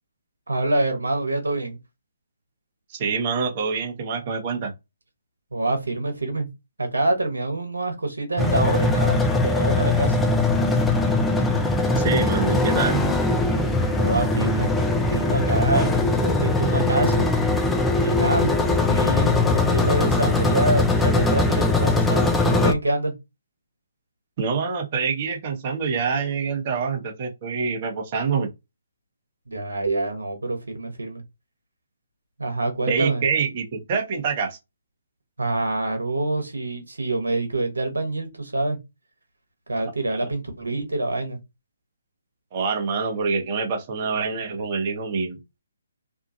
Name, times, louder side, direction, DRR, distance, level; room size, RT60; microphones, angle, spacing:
voice 1, 0.5-1.8 5.5-6.5 6.8-10.1 14.0-14.7 15.1-17.3 18.0-23.1 29.5-31.2 32.4-33.2 35.4-38.8 39.7-41.4, right 2 dB, 80° right, 1.1 m, -26 dB
voice 2, 2.9-4.7 12.0-13.0 24.4-28.5 32.9-34.6 40.1-40.2 42.5-45.4, right 5 dB, 35° right, 0.9 m, -26 dB
sound 1, 8.4-22.7, left 2 dB, 5° left, 0.4 m, -21 dB
2.6 x 2.4 x 2.6 m
figure-of-eight pair, 140°, 0 cm